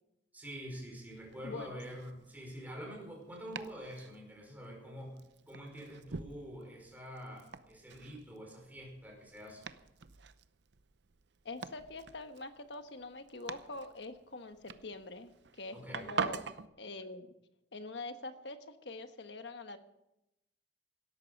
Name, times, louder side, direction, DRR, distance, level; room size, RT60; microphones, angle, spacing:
voice 1, 0.3-5.2 5.5-9.7 15.7-16.2, equal, 10° right, 0 dB, 5.2 m, -46 dB
Domestic sounds home sounds, 1.1-16.7, right 5 dB, 70° right, 0.7 m, -45 dB
voice 2, 1.4-1.8 11.4-15.3 15.6-16.5 16.8-17.3 17.7-19.8, left 2 dB, 65° left, 8 dB, 1.3 m, -44 dB
17.5 x 13.5 x 5.3 m, 0.87 s
head